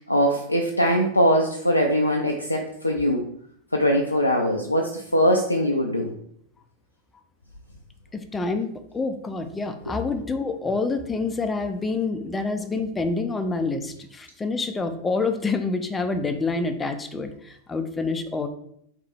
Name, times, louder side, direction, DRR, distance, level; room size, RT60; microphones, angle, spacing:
voice 1, 0.0-3.2 3.7-6.1, equal, 85° left, 1 dB, 0.4 m, -22 dB
voice 2, 8.1-18.5, left 3 dB, 15° left, 8 dB, 0.4 m, -27 dB
3.6 x 3.2 x 3.4 m, 0.69 s
figure-of-eight pair, 90°, 0 cm